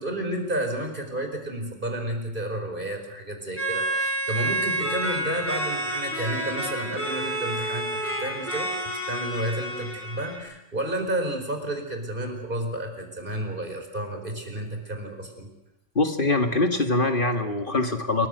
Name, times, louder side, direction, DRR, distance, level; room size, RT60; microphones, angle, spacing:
voice 1, 0.0-8.7 9.1-15.5 16.2-16.4, right 1 dB, 45° right, 5 dB, 5.1 m, -31 dB
sound 1, 3.5-10.4, right 1 dB, 10° left, 6.4 m, -29 dB
voice 2, 16.0-18.3, left 2 dB, 45° left, 6 dB, 2.0 m, -23 dB
28.0 x 24.0 x 6.7 m, 0.90 s
omnidirectional pair, 1.3 m